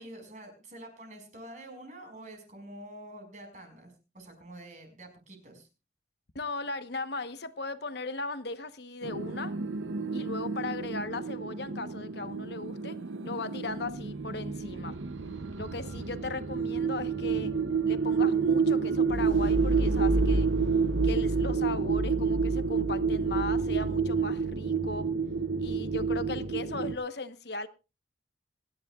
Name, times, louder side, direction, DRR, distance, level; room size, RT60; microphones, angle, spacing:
voice 1, 0.0-5.7, right 1 dB, 40° right, 5.3 m, -47 dB
voice 2, 6.3-9.5 10.1-13.0 13.2-14.9 15.6-17.5 17.9-20.5 21.0-25.1 25.6-27.7, left 3 dB, 60° left, 1.1 m, -37 dB
sound 1, 9.0-27.0, right 4 dB, 90° right, 0.8 m, -29 dB
26.0 x 11.0 x 2.4 m
head